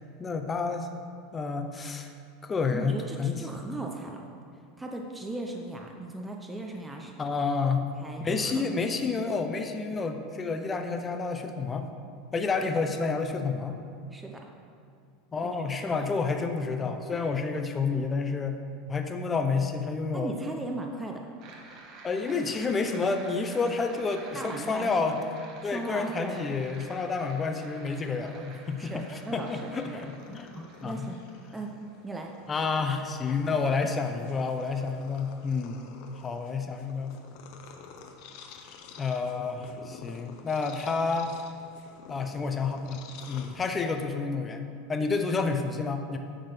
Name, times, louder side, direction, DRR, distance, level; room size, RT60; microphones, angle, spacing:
voice 1, 0.2-0.9 1.3-2.1 2.4-3.4 7.2-7.9 8.2-11.9 12.3-13.8 15.3-18.6 18.9-20.3 22.0-25.2 25.6-31.1 32.5-35.9 36.2-37.2 39.0-41.3 42.1-46.2, left 4 dB, 20° left, 6 dB, 0.8 m, -29 dB
voice 2, 2.7-4.2 4.8-7.1 7.8-8.7 14.1-14.4 15.4-16.0 17.1-17.3 20.1-21.2 24.3-25.2 25.6-26.4 28.8-30.0 30.5-31.2 31.5-32.3, right 2 dB, 10° right, 1 dB, 0.7 m, -38 dB
sound 1, 21.4-32.3, right 3 dB, 50° right, 1.3 m, -50 dB
Purr, 28.9-44.0, left 6 dB, 60° left, 0.9 m, -50 dB
10.5 x 3.9 x 6.6 m, 2.3 s
supercardioid pair, 125°, 0 cm